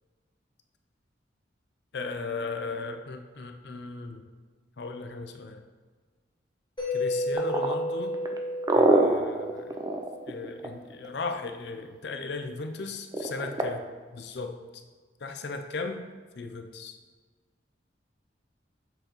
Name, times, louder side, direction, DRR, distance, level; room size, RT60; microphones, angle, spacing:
voice 1, 1.9-4.2 4.8-5.6 6.9-8.2 8.8-9.8 10.3-13.9 14.1-14.6 15.2-16.0 16.4-16.9, left 3 dB, 60° left, 6 dB, 0.5 m, -36 dB
Mallet percussion, 6.8-10.5, left 1 dB, 25° left, 1.9 m, -32 dB
sound 1, 7.4-11.1 13.1-13.7, right 2 dB, 20° right, 0.4 m, -24 dB
7.8 x 4.5 x 3.0 m, 1.4 s
head